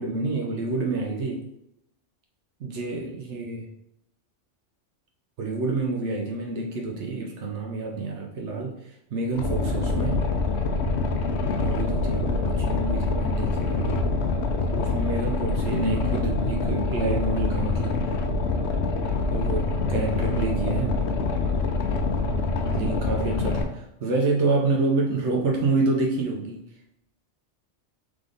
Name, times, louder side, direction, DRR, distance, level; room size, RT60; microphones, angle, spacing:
voice 1, 0.0-1.5 2.6-3.7 5.4-10.3 11.6-14.1 14.8-18.2 19.3-21.0 22.7-26.7, right 3 dB, 75° right, 0 dB, 1.0 m, -28 dB
Boat Water vehicle, 9.3-23.6, left 3 dB, 70° left, 0.9 m, -25 dB
3.7 x 3.4 x 3.8 m, 0.80 s
omnidirectional pair, 1.2 m